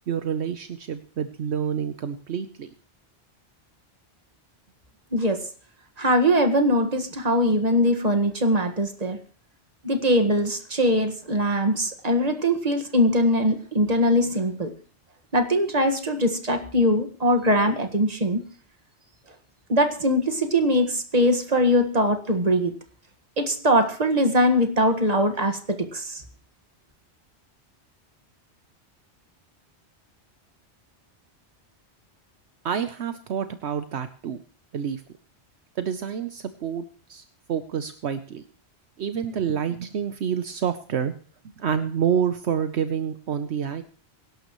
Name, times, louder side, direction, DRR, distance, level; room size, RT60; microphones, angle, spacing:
voice 1, 0.1-2.7 32.6-34.4 34.7-35.0 35.8-37.2 37.5-38.4 39.0-41.1 41.6-43.8, right 8 dB, 70° right, 10 dB, 1.0 m, -28 dB
voice 2, 5.1-5.4 6.0-9.2 9.8-14.7 15.3-18.4 19.7-22.7 23.4-26.2, equal, 35° right, 7 dB, 1.8 m, -22 dB
23.5 x 11.5 x 3.1 m, 0.42 s
omnidirectional pair, 1.2 m